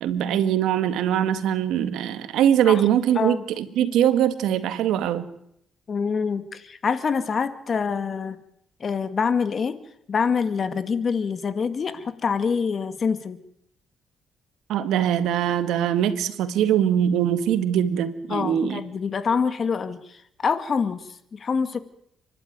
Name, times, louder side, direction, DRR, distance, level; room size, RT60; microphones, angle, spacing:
voice 1, 0.0-5.3 14.7-18.8, right 10 dB, 85° right, 12 dB, 1.9 m, -22 dB
voice 2, 5.9-8.4 8.8-9.8 10.1-13.4 18.3-21.8, left 5 dB, 45° left, 12 dB, 2.1 m, -25 dB
30.0 x 12.0 x 9.6 m, 0.74 s
cardioid pair, 90°, 0 cm